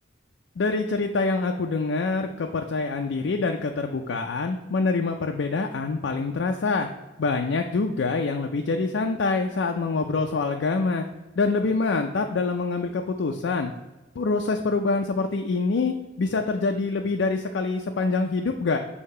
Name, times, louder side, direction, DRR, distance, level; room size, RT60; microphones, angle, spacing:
voice 1, 0.6-6.9 7.2-11.0 11.4-13.7 14.2-18.8, left 3 dB, 80° left, 4 dB, 0.4 m, -25 dB
6.5 x 2.9 x 5.4 m, 1.1 s
head